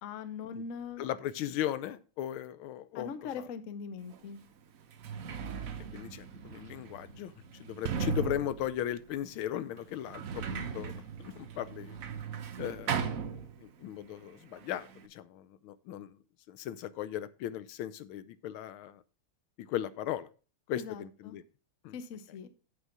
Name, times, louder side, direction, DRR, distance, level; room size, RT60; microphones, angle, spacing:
voice 1, 0.0-1.0 2.9-4.4 20.7-21.4 21.9-22.5, left 6 dB, 55° left, 11 dB, 0.9 m, -41 dB
voice 2, 1.0-3.5 5.9-7.3 7.6-10.9 11.2-12.0 12.6-16.2 16.5-19.0 19.7-20.3 20.7-21.4 21.8-21.9, left 11 dB, 85° left, 15 dB, 1.5 m, -37 dB
Sliding door, 4.1-4.2 4.8-14.0 14.2-15.1, right 6 dB, 55° right, 1.0 m, -38 dB
8.2 x 5.2 x 5.9 m, 0.36 s
omnidirectional pair, 2.2 m